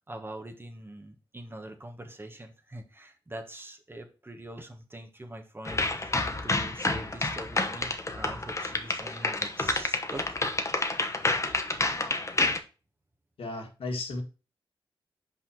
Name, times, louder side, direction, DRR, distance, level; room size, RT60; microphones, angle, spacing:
voice 1, 0.0-6.2 6.4-10.4, right 1 dB, 25° right, 5 dB, 1.3 m, -43 dB
sound 1, 5.7-12.6, left 2 dB, 30° left, 1.0 m, -29 dB
voice 2, 13.4-14.2, left 2 dB, 80° left, 3 dB, 1.7 m, -34 dB
5.6 x 4.4 x 4.8 m, 0.33 s
cardioid pair, 75°, 9 cm